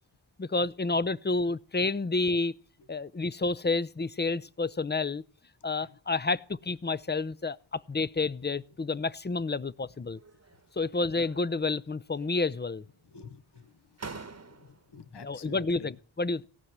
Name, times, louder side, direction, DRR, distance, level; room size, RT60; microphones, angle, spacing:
voice 1, 0.4-2.6 2.9-5.2 5.6-10.2 10.7-12.8 15.1-16.4, left 3 dB, 20° left, 0.6 m, -30 dB
sound 1, 10.1-10.7 11.1-11.9 12.2-12.9 13.6-13.7 14.0-14.9, right 4 dB, 35° right, 1.2 m, -47 dB
voice 2, 13.1-13.7 14.6-15.9, left 4 dB, 60° left, 1.1 m, -47 dB
17.5 x 6.0 x 9.8 m
cardioid pair, 40°, 46 cm